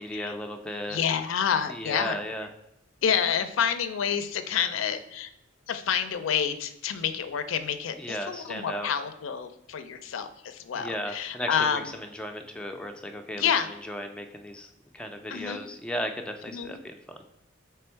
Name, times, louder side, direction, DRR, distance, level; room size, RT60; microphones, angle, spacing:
voice 1, 0.0-1.0 1.7-2.5 8.0-8.9 10.7-13.5 13.8-14.7 14.9-17.2, equal, 5° left, 4 dB, 0.3 m, -35 dB
voice 2, 0.9-2.2 3.0-5.3 5.7-11.9 13.3-13.7 15.3-15.7 16.5-16.8, left 7 dB, 80° left, 10 dB, 0.4 m, -28 dB
3.4 x 3.4 x 4.4 m, 0.82 s
head